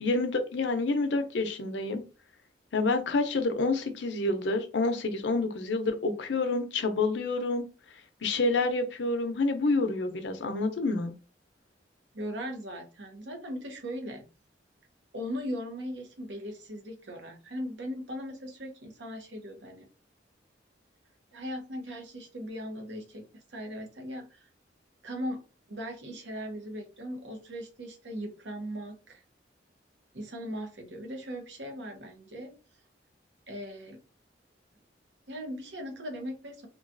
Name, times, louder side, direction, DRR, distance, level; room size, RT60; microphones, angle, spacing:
voice 1, 0.0-2.0 2.7-7.6 8.2-11.1, left 3 dB, 80° left, 7 dB, 0.6 m, -28 dB
voice 2, 12.1-14.2 15.1-19.9 21.3-23.2 23.5-24.5 25.0-25.4 25.7-29.2 30.1-32.5 33.5-34.0 35.3-36.7, equal, 80° right, 3 dB, 0.8 m, -38 dB
3.0 x 2.3 x 2.5 m, 0.34 s
head